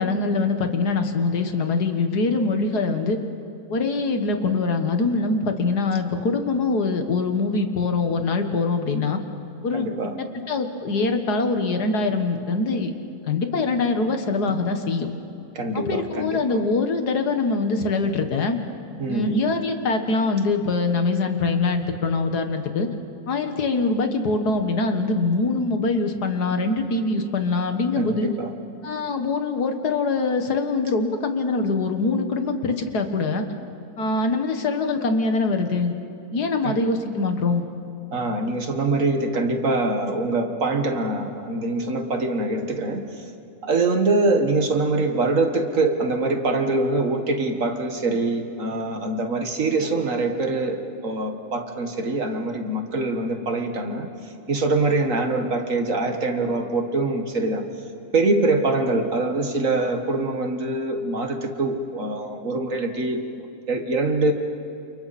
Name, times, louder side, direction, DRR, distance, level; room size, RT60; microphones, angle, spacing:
voice 1, 0.0-3.2 3.7-9.2 9.6-9.9 10.2-12.9 13.3-15.1 15.7-18.6 19.1-22.9 23.3-28.3 28.8-33.4 34.0-36.0 36.3-37.6, left 3 dB, 80° left, 6 dB, 2.0 m, -23 dB
voice 2, 9.7-10.2 15.6-16.6 19.0-19.4 28.0-28.5 36.6-36.8 38.1-43.1 43.6-54.1 54.5-57.6 58.1-64.3, right 2 dB, 55° right, 5 dB, 2.0 m, -24 dB
29.0 x 28.5 x 4.3 m, 2.8 s
omnidirectional pair, 1.7 m